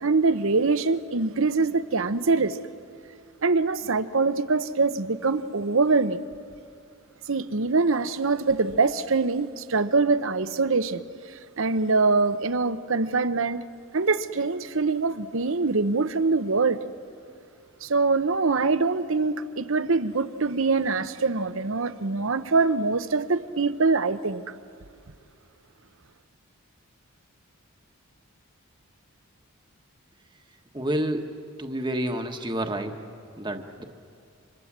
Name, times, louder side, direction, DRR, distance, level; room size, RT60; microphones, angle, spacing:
voice 1, 0.0-2.6 3.4-6.2 7.3-11.0 11.3-13.6 13.9-16.8 17.8-24.4, right 3 dB, 60° right, 0.8 m, -24 dB
voice 2, 30.7-31.3 31.6-32.9 33.4-33.8, right 1 dB, 20° right, 1.3 m, -29 dB
29.5 x 25.5 x 7.4 m
head